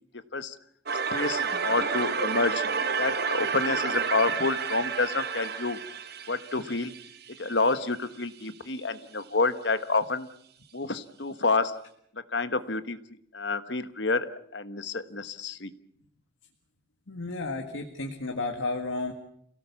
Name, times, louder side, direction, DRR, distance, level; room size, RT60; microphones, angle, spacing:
sound 1, 0.9-7.7, right 5 dB, 55° right, 1.3 m, -30 dB
voice 1, 1.1-2.6 3.0-5.8 6.3-6.9 7.4-10.3 10.7-11.8 12.1-13.0 13.3-15.7, left 3 dB, 60° left, 11 dB, 1.3 m, -28 dB
voice 2, 17.1-19.1, left 3 dB, 85° left, 4 dB, 1.9 m, -32 dB
28.0 x 17.5 x 7.2 m, 0.71 s
head